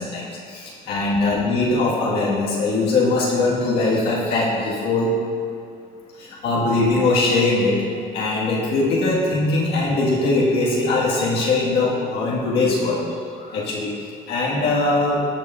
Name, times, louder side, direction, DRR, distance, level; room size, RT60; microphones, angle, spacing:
voice 1, 0.0-5.1 6.2-7.8 8.1-13.0 13.3-13.9 14.3-15.2, left 2 dB, 80° left, -6 dB, 1.7 m, -21 dB
12.5 x 5.6 x 2.5 m, 2.3 s
cardioid pair, 110°, 17 cm